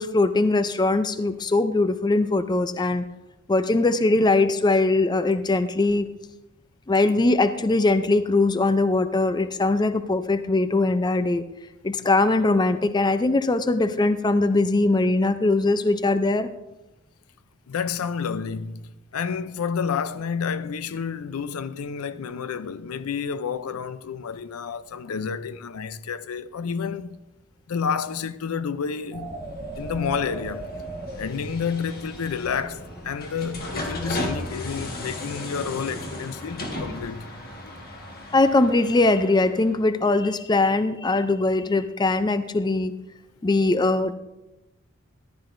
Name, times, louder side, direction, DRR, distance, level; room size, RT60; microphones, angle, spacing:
voice 1, 0.0-3.0 3.5-6.1 6.9-11.4 11.8-16.5 38.3-42.9 43.4-44.1, left 2 dB, 20° left, 0.4 m, -21 dB
voice 2, 17.7-27.2 27.7-29.3 29.8-30.7 31.2-37.3 37.6-37.7, left 6 dB, 90° left, 0.5 m, -30 dB
sound 1, 29.1-39.9, left 1 dB, 45° left, 1.5 m, -36 dB
sound 2, 29.1-32.0 32.3-34.4, right 2 dB, 5° right, 1.4 m, -38 dB
14.5 x 11.5 x 2.6 m
head